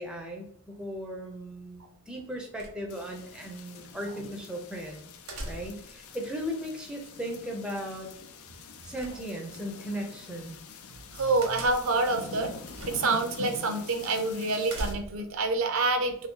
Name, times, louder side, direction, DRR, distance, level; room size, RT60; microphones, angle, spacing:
voice 1, 0.0-5.1 5.5-8.1 8.8-10.6, equal, 5° right, 1 dB, 0.5 m, -37 dB
sound 1, 2.6-3.2 5.3-6.0 9.0-9.7 11.4-12.0 12.7-13.2 13.5-13.6 14.7-15.4, right 1 dB, 90° right, 0.9 m, -39 dB
sound 2, 2.9-14.9, left 5 dB, 75° left, 0.4 m, -45 dB
voice 2, 11.1-12.5 12.9-16.3, right 3 dB, 65° right, 6 dB, 0.5 m, -27 dB
2.7 x 2.6 x 3.5 m, 0.64 s
head